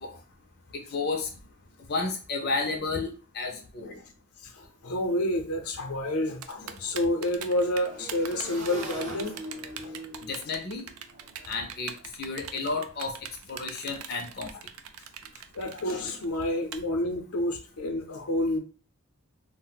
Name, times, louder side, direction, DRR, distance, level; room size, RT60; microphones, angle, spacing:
voice 1, 0.9-1.3 1.9-3.9 10.3-10.9 11.5-13.1 13.5-14.5, left 3 dB, 45° left, 2 dB, 0.5 m, -32 dB
voice 2, 3.5-4.0 4.4-10.0 15.5-18.6, left 1 dB, 85° left, 4 dB, 0.6 m, -29 dB
Motorcycle / Engine, 4.6-4.7 4.9-12.1, right 1 dB, 35° right, 0.7 m, -44 dB
Typing, 6.4-16.8, right 9 dB, 90° right, 0.4 m, -41 dB
2.4 x 2.1 x 3.9 m, 0.37 s
head